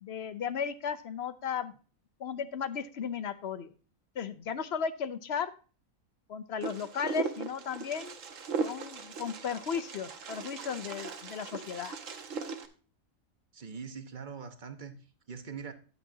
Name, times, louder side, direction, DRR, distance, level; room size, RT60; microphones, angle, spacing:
voice 1, 0.0-1.7 2.2-3.7 4.2-5.5 6.3-8.2 8.6-12.0, left 7 dB, 55° left, 0.8 m, -35 dB
Wind, 6.6-12.7, right 5 dB, 65° right, 1.4 m, -38 dB
voice 2, 13.5-15.0 15.3-15.7, right 6 dB, 40° right, 1.1 m, -42 dB
11.0 x 8.9 x 2.7 m
omnidirectional pair, 1.4 m